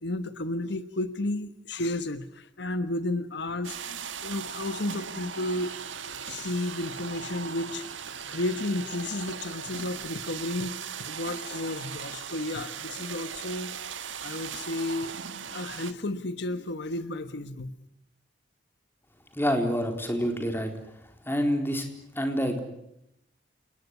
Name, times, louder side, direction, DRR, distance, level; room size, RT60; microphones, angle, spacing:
voice 1, 0.0-5.8 6.3-7.9 8.3-10.7 11.0-15.1 15.5-17.7, left 2 dB, 65° left, 11 dB, 1.3 m, -32 dB
sound 1, 3.6-15.9, right 7 dB, 90° right, 1.8 m, -38 dB
voice 2, 19.3-20.7 21.2-21.9 22.2-22.6, equal, 10° left, 5 dB, 4.1 m, -27 dB
28.5 x 19.5 x 9.6 m, 0.81 s
head